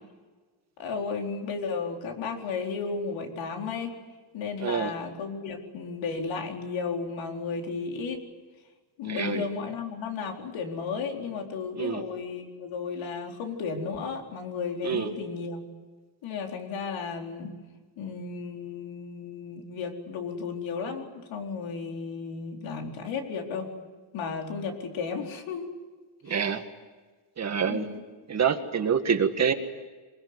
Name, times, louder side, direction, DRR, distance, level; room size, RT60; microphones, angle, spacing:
voice 1, 0.8-3.9 4.3-8.2 9.0-15.7 16.2-17.6 18.0-23.8 24.1-25.7 26.3-26.4 27.7-28.0, left 5 dB, 85° left, 3 dB, 4.4 m, -34 dB
voice 2, 9.1-9.4 11.8-12.0 14.8-15.1 26.2-26.6 27.4-27.9 28.3-29.5, right 7 dB, 35° right, 7 dB, 2.0 m, -26 dB
23.5 x 22.0 x 9.7 m, 1.3 s
cardioid pair, 155°, 45 cm